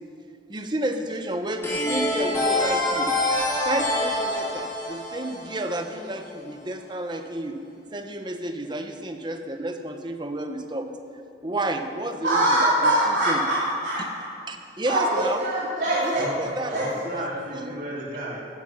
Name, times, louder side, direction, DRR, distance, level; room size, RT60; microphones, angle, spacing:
voice 1, 0.5-3.1 3.6-7.6 7.9-10.9 11.4-13.4 14.5-15.4 16.0-16.7 17.5-17.8, right 1 dB, 25° right, 5 dB, 1.1 m, -31 dB
sound 1, 1.6-6.3, left 1 dB, 15° left, 3.6 m, -26 dB
voice 2, 12.2-13.6 13.8-14.3 14.9-16.2 16.7-16.8 17.1-17.2, right 1 dB, 80° right, -10 dB, 3.4 m, -23 dB
voice 3, 16.7-18.4, right 1 dB, 50° right, -5 dB, 2.9 m, -33 dB
17.5 x 10.0 x 5.7 m, 2.4 s
head